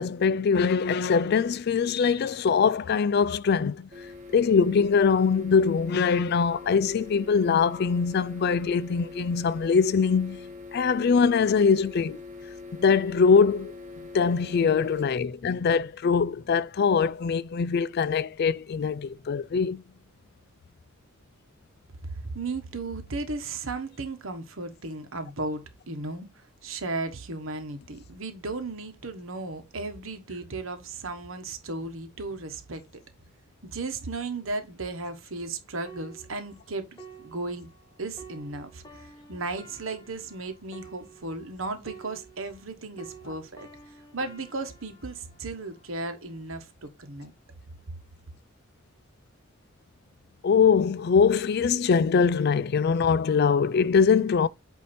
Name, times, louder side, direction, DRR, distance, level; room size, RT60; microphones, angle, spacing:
voice 1, 0.0-3.9 4.3-10.4 10.7-12.2 12.8-13.7 14.1-19.8 50.4-54.5, left 5 dB, 50° left, 0.3 m, -22 dB
sound 1, 3.9-15.1, left 3 dB, 40° right, 1.3 m, -43 dB
voice 2, 22.0-33.0 33.6-37.7 38.0-43.7 44.1-47.3, right 3 dB, 75° right, 1.3 m, -35 dB
sound 2, 35.9-42.7 43.0-46.6 47.2-47.4, right 4 dB, 20° left, 1.2 m, -50 dB
8.3 x 2.8 x 4.3 m
head